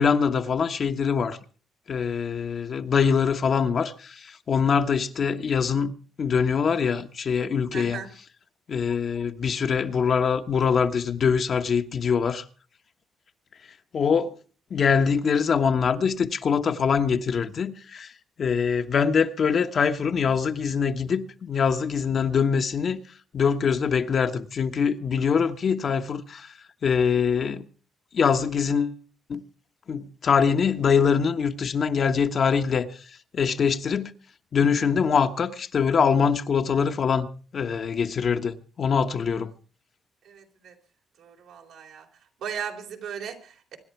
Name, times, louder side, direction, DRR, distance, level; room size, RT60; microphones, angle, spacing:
voice 1, 0.0-1.4 1.9-5.9 6.2-8.0 8.7-12.4 13.9-14.3 14.7-18.1 18.4-23.0 23.3-26.5 26.8-27.6 28.1-29.0 29.3-29.4 29.9-34.1 34.5-37.3 37.5-39.5, left 6 dB, 50° left, 1.3 m, -23 dB
voice 2, 7.7-8.1 40.3-40.7 41.2-42.1 42.4-43.8, right 7 dB, 80° right, 3.8 m, -37 dB
24.5 x 10.5 x 4.6 m
cardioid pair, 90°, 0 cm